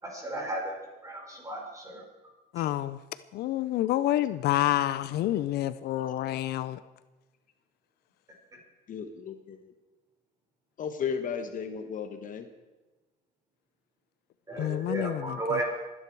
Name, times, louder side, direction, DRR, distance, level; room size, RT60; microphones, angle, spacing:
voice 1, 0.0-0.7 1.0-2.0 14.5-15.6, right 2 dB, 20° right, 0 dB, 5.4 m, -34 dB
voice 2, 2.5-3.0 3.3-6.8 14.6-15.6, left 14 dB, 70° left, 14 dB, 0.5 m, -28 dB
voice 3, 8.9-9.7 10.8-12.5, left 6 dB, 50° left, 8 dB, 1.2 m, -34 dB
24.5 x 10.0 x 4.7 m, 1.2 s
cardioid pair, 110°, 17 cm